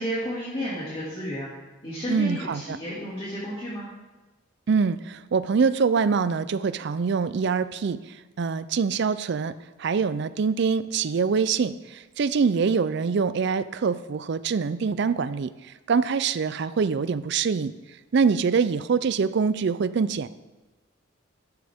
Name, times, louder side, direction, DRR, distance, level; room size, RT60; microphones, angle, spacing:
voice 1, 0.0-1.5 1.8-3.9, equal, 30° left, -8 dB, 2.3 m, -32 dB
voice 2, 2.1-2.8 4.7-8.0 8.4-9.5 9.8-15.5 15.9-17.7 18.1-20.3, right 5 dB, 60° right, 15 dB, 0.4 m, -24 dB
12.5 x 8.1 x 3.6 m, 1.1 s
head